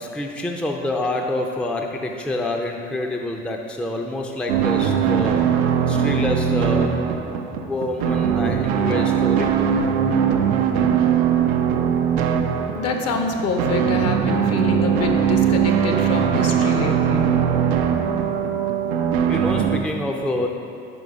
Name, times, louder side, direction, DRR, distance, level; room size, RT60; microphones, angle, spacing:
voice 1, 0.0-5.4 5.9-7.0 7.5-9.5 19.3-20.5, left 1 dB, 5° left, 2 dB, 0.4 m, -27 dB
sound 1, 4.5-19.8, right 8 dB, 90° right, 0.5 m, -20 dB
voice 2, 12.7-17.3, left 3 dB, 55° left, 4 dB, 0.8 m, -26 dB
5.4 x 4.8 x 4.7 m, 2.5 s
hypercardioid pair, 65°, 30 cm